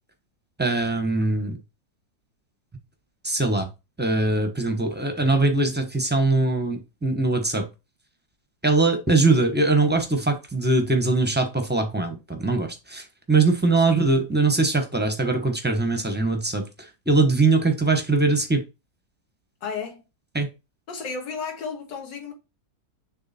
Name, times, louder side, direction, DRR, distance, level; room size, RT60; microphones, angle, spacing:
voice 1, 0.6-1.6 3.2-3.7 4.0-7.7 8.6-16.6 17.1-18.6 20.3-20.5, right 3 dB, 10° right, 0.6 m, -22 dB
voice 2, 19.6-20.0 20.9-22.3, left 5 dB, 85° left, 2.0 m, -33 dB
6.8 x 3.4 x 4.2 m
omnidirectional pair, 1.9 m